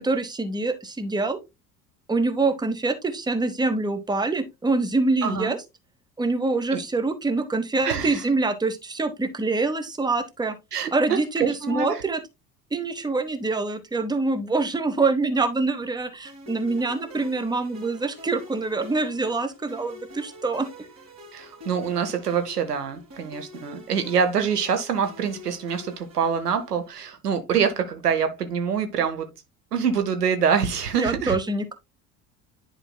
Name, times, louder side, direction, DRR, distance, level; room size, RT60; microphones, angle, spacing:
voice 1, 0.0-1.4 2.1-5.6 6.2-10.6 10.9-12.2 12.7-20.9 30.9-31.8, right 3 dB, 10° right, 1.1 m, -25 dB
voice 2, 5.2-5.5 6.7-6.8 7.8-8.2 10.7-12.0 21.3-29.3 29.7-31.4, right 7 dB, 85° right, 1.0 m, -25 dB
sound 1, 16.2-26.9, left 1 dB, 35° right, 3.2 m, -46 dB
10.5 x 4.8 x 2.3 m
figure-of-eight pair, 65°, 46 cm